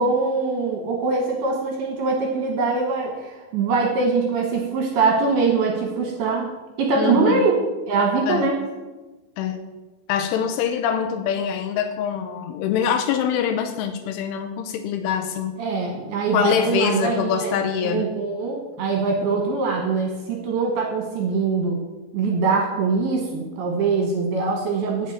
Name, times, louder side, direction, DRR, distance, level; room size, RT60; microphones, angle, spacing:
voice 1, 0.0-6.5 6.8-8.6 15.6-17.5 17.8-21.8 22.1-25.1, right 4 dB, 70° right, 1 dB, 2.6 m, -23 dB
voice 2, 7.0-7.4 8.3-8.5 9.4-9.6 10.1-15.5 16.3-18.1, left 8 dB, 80° left, 7 dB, 3.0 m, -24 dB
8.2 x 7.4 x 8.7 m, 1.2 s
omnidirectional pair, 5.9 m